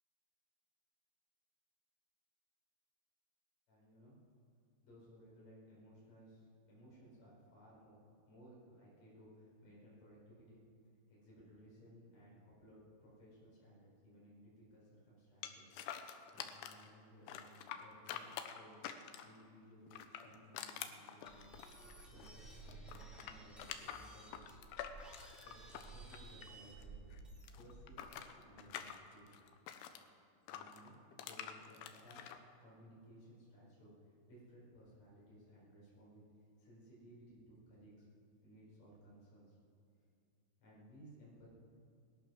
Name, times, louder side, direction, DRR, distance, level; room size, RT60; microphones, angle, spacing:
voice 1, 3.7-4.2 4.8-8.0 8.3-10.6 11.1-15.7 16.0-18.8 19.2-21.6 22.0-22.3 22.7-24.4 25.4-27.1 27.6-29.3 30.5-32.2 32.6-33.9 34.3-36.2 36.6-38.1 38.4-39.6 40.6-41.5, equal, 35° left, -6 dB, 5.8 m, -60 dB
sound 1, 15.4-16.9 17.3-19.4 19.9-22.4 22.7-26.8 27.1-30.0 30.5-32.4, left 10 dB, 85° left, 2.4 m, -47 dB
sound 2, 21.2-28.0, right 3 dB, ahead, 0.4 m, -55 dB
19.5 x 11.5 x 6.1 m, 2.4 s
omnidirectional pair, 5.5 m